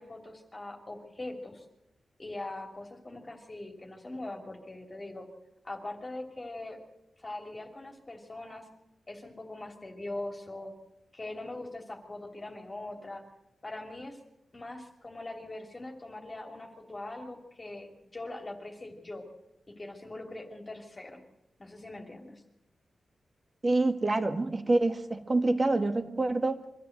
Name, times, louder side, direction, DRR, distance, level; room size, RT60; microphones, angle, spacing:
voice 1, 0.0-1.6 2.2-5.3 5.6-6.8 7.2-8.7 9.1-10.7 11.1-13.2 13.6-14.2 14.5-19.2 19.7-21.2 21.6-22.4, left 2 dB, 25° left, 2 dB, 2.9 m, -42 dB
voice 2, 23.6-26.6, right 2 dB, 30° right, 7 dB, 1.9 m, -26 dB
24.0 x 13.5 x 8.0 m, 0.89 s
wide cardioid pair, 120°, 0 cm